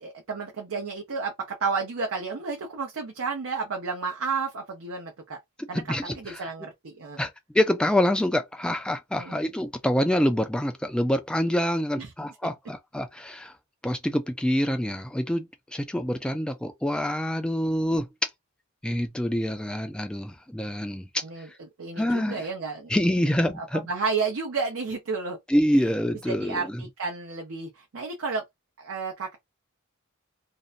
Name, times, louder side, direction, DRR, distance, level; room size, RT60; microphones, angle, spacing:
voice 1, 0.0-5.4 5.7-7.2 9.2-9.4 12.0-12.1 21.2-21.5 21.8-22.9 23.5-25.4 26.3-28.4 28.8-29.4, right 4 dB, 85° right, 0.7 m, -31 dB
voice 2, 5.7-6.5 7.2-13.5 13.8-18.3 18.8-21.1 22.0-22.4 22.9-23.9 25.5-26.8, equal, 5° left, 0.3 m, -26 dB
2.5 x 2.1 x 2.4 m
head